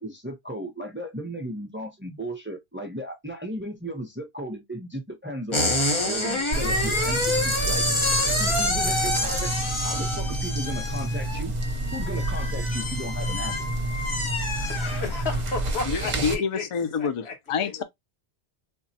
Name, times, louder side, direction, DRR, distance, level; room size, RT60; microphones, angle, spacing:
voice 1, 0.0-5.7 6.0-7.9 8.4-9.5 9.8-11.5 11.9-13.8, equal, 15° right, 0.5 m, -35 dB
sound 1, 5.5-15.5, left 2 dB, 30° left, 0.8 m, -28 dB
sound 2, 6.5-16.4, right 2 dB, 45° right, 0.8 m, -29 dB
voice 2, 14.7-16.7 17.0-17.7, left 4 dB, 90° left, 1.4 m, -33 dB
voice 3, 15.9-17.8, left 6 dB, 60° left, 0.3 m, -27 dB
3.6 x 2.0 x 2.6 m
omnidirectional pair, 1.1 m